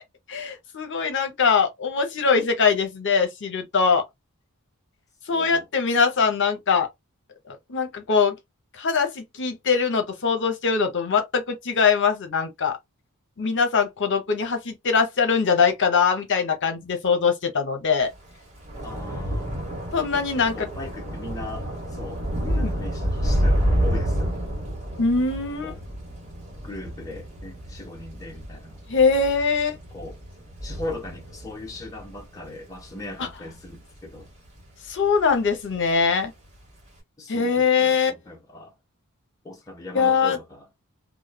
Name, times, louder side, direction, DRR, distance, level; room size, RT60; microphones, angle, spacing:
voice 1, 0.3-4.0 5.3-6.9 7.5-8.4 8.8-12.8 13.4-18.1 19.9-20.7 22.4-22.7 25.0-25.7 28.9-29.8 33.2-33.3 34.9-36.3 37.3-38.1 39.9-40.4, left 5 dB, 55° left, 0.7 m, -22 dB
voice 2, 5.3-5.7 18.8-19.6 20.1-24.4 25.6-25.8 26.6-28.8 29.9-30.2 30.6-34.3 37.2-38.7 39.4-40.8, left 2 dB, 15° left, 0.6 m, -39 dB
Thunder / Rain, 18.1-34.7 35.0-35.5 35.8-35.9, equal, 30° right, 1.3 m, -29 dB
3.0 x 2.1 x 2.2 m
head